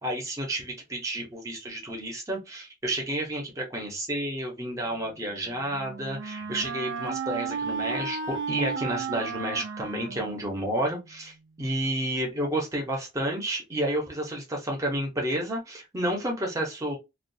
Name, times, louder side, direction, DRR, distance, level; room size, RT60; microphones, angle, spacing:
voice 1, 0.0-17.0, right 1 dB, 15° right, 0.7 m, -31 dB
Wind instrument woodwind instrument, 5.2-11.1, right 5 dB, 65° right, 0.4 m, -34 dB
2.4 x 2.2 x 2.6 m
head